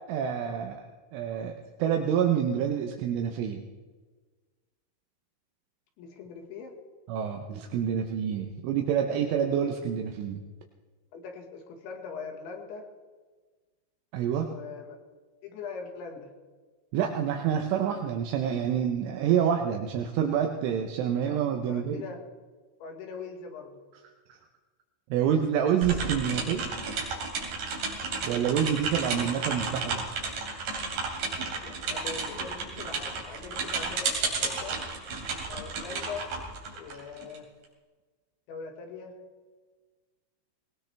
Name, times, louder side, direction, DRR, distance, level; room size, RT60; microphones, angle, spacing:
voice 1, 0.1-0.8 1.1-1.6 1.8-3.6 7.1-10.4 14.1-14.5 16.9-22.0 24.3-24.4 25.1-26.7 28.2-30.1, right 8 dB, 80° right, 4 dB, 3.3 m, -27 dB
voice 2, 6.0-6.7 11.1-12.9 14.4-15.0 15.4-16.3 21.2-22.2 22.8-23.8 29.1-29.3 31.6-34.8 35.5-36.3 36.7-37.5 38.5-39.2, left 5 dB, 70° left, 2 dB, 3.8 m, -41 dB
sound 1, 25.8-37.4, right 4 dB, 45° right, 3.9 m, -33 dB
20.0 x 19.5 x 3.4 m, 1.4 s
omnidirectional pair, 5.9 m